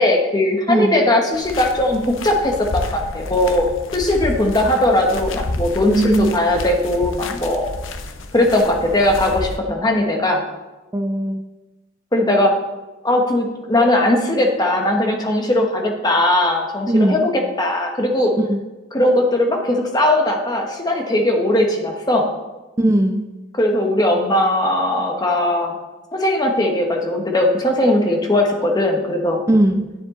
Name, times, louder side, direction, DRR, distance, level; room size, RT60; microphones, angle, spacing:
voice 1, 0.0-7.7 8.3-10.4 12.1-12.5 13.0-17.3 17.6-18.3 18.9-22.3 23.6-25.8 26.1-29.4, left 1 dB, 20° left, 2 dB, 1.2 m, -19 dB
sound 1, 1.3-9.6, left 2 dB, 90° left, 0.7 m, -30 dB
voice 2, 5.9-6.3 9.7-9.8 10.9-11.4 16.9-17.2 18.4-18.6 22.8-23.2 29.5-29.9, right 1 dB, 15° right, 7 dB, 0.4 m, -18 dB
9.9 x 7.2 x 3.8 m, 1.1 s
head